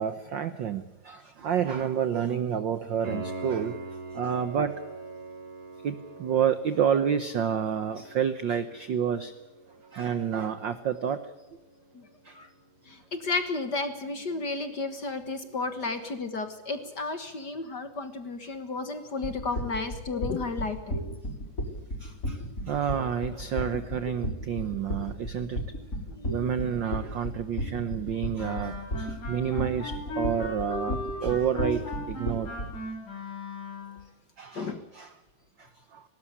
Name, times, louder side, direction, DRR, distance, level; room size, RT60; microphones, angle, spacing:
voice 1, 0.0-3.8 4.1-4.8 5.8-9.3 9.9-11.2 12.2-12.4 17.2-17.3 22.0-25.6 26.3-32.5 34.4-35.1 35.6-36.0, right 8 dB, 85° right, 12 dB, 1.0 m, -29 dB
Piano, 3.0-13.7 17.0-17.1, right 2 dB, 55° right, 6.1 m, -44 dB
voice 2, 12.9-21.0 26.1-26.3 29.5-29.6 30.9-31.0 34.5-34.8, left 3 dB, 45° left, 9 dB, 1.5 m, -33 dB
sound 1, 19.2-32.8, equal, 25° left, 5.7 m, -33 dB
Wind instrument woodwind instrument, 28.4-34.0, left 1 dB, 85° left, 8.3 m, -37 dB
19.0 x 18.5 x 10.0 m, 1.0 s
omnidirectional pair, 3.4 m